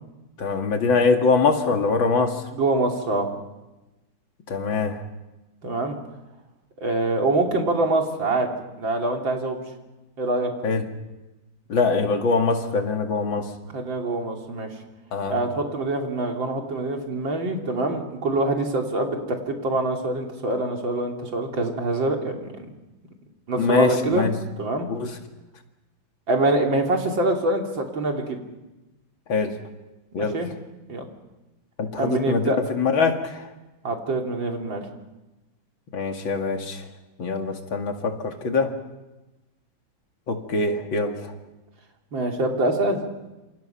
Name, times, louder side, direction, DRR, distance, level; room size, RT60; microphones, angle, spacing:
voice 1, 0.4-2.4 4.5-5.0 10.6-10.8 11.7-13.5 15.1-15.4 23.6-24.3 24.9-25.1 29.3-29.6 30.1-30.4 31.8-33.5 35.9-36.8 37.2-38.7 40.3-41.3, left 4 dB, 85° left, 4 dB, 2.9 m, -23 dB
voice 2, 2.5-3.3 5.6-6.0 6.8-8.5 8.8-9.6 10.2-10.5 13.7-14.7 15.3-22.7 23.5-24.3 24.6-24.9 26.3-28.4 30.2-30.5 30.9-31.1 32.0-32.6 33.8-34.9 42.1-43.0, right 2 dB, 75° right, 2 dB, 3.8 m, -25 dB
27.5 x 27.0 x 5.9 m, 1.0 s
omnidirectional pair, 2.1 m